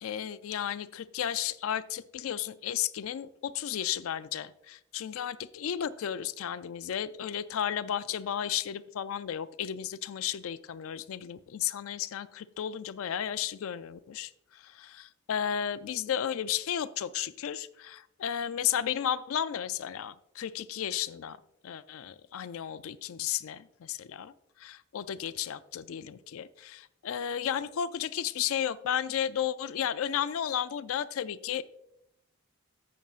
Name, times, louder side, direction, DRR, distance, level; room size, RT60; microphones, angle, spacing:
voice 1, 0.0-21.4 21.6-24.3 24.6-31.6, left 9 dB, 75° left, 14 dB, 0.4 m, -33 dB
11.0 x 7.4 x 2.4 m, 0.81 s
head